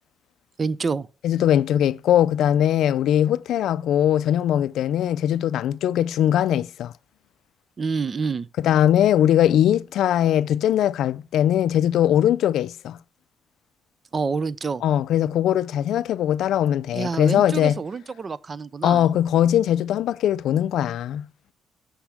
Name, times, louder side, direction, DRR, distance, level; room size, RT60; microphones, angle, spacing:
voice 1, 0.6-1.1 7.8-8.5 14.1-14.8 16.9-19.1, right 4 dB, 35° right, 0.5 m, -27 dB
voice 2, 1.2-6.9 8.6-13.0 14.8-17.8 18.8-21.5, left 11 dB, 80° left, 0.3 m, -21 dB
7.3 x 7.1 x 3.5 m
cardioid pair, 90°, 0 cm